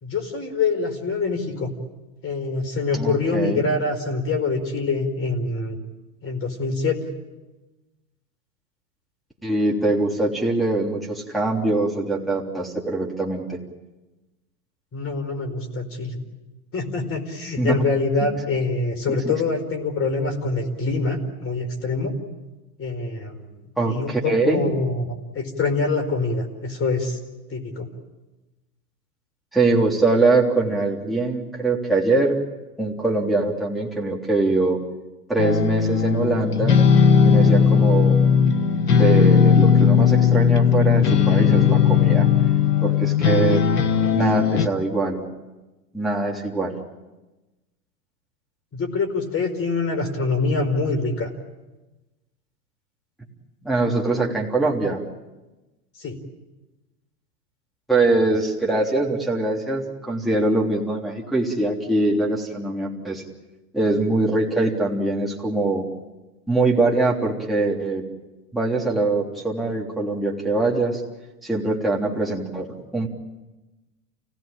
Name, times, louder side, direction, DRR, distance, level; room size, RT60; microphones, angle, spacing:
voice 1, 0.0-1.7 2.2-5.8 6.2-7.0 14.9-16.2 16.7-22.1 22.8-23.5 23.9-27.2 27.5-27.9 48.7-51.3 56.0-56.2, left 3 dB, 30° left, 8 dB, 4.6 m, -25 dB
voice 2, 2.9-3.6 9.4-13.6 17.6-17.9 19.1-19.3 23.8-24.6 29.5-32.4 32.8-34.8 35.3-36.7 37.2-38.1 38.9-42.3 42.8-43.6 44.1-45.2 45.9-46.8 53.6-55.0 57.9-63.2 63.7-65.8 66.5-68.0 68.5-71.0 71.4-73.1, right 2 dB, ahead, -4 dB, 3.4 m, -23 dB
sound 1, 35.4-44.7, left 7 dB, 90° left, 1.3 m, -17 dB
29.0 x 17.0 x 8.9 m, 1.1 s
hypercardioid pair, 100°, 45 cm